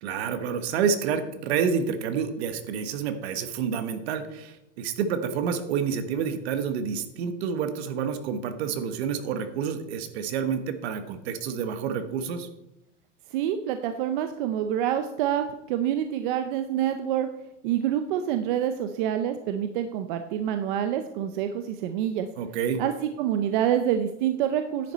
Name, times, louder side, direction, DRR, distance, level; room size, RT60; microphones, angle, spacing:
voice 1, 0.0-12.5 22.4-22.8, right 7 dB, 60° right, 9 dB, 1.3 m, -28 dB
voice 2, 13.3-17.3 17.6-22.3 22.8-24.9, right 10 dB, 45° right, 8 dB, 0.6 m, -27 dB
10.0 x 9.2 x 4.1 m, 0.89 s
supercardioid pair, 165°, 37 cm